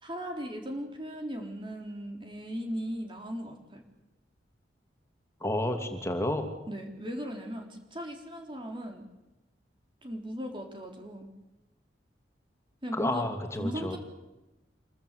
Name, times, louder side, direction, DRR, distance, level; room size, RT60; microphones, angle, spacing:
voice 1, 0.0-3.8 6.7-9.0 10.0-11.3 12.8-13.3 13.6-14.0, equal, 25° right, 3 dB, 3.8 m, -37 dB
voice 2, 5.4-6.5 12.9-14.0, left 1 dB, 15° left, 5 dB, 2.9 m, -30 dB
27.0 x 23.0 x 8.4 m, 0.99 s
head